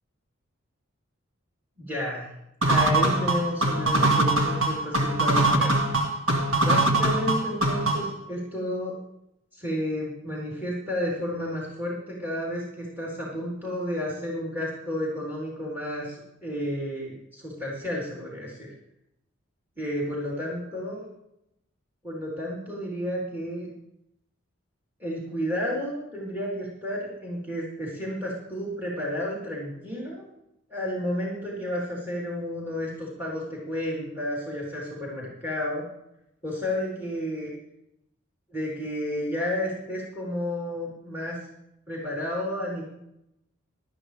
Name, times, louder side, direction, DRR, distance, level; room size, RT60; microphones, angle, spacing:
voice 1, 1.8-2.3 2.7-5.9 6.6-8.9 9.5-18.7 19.8-21.0 22.0-23.7 25.0-30.3 30.7-35.8 36.4-37.5 38.5-41.4 41.9-42.8, left 1 dB, 10° right, -5 dB, 3.8 m, -31 dB
sound 1, 2.6-8.2, right 2 dB, 85° right, 1.9 m, -23 dB
18.0 x 13.0 x 3.4 m, 0.81 s
head